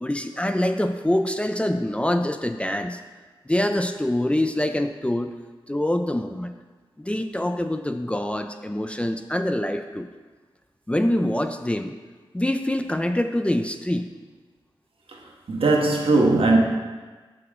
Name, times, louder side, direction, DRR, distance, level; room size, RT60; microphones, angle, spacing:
voice 1, 0.0-3.0 3.5-5.3 5.7-6.5 7.0-10.1 10.9-11.9 12.3-14.1, left 1 dB, 10° left, 7 dB, 0.4 m, -25 dB
voice 2, 15.5-16.6, right 3 dB, 75° right, 0 dB, 0.9 m, -18 dB
5.9 x 4.9 x 3.7 m, 1.4 s
cardioid pair, 45°, 10 cm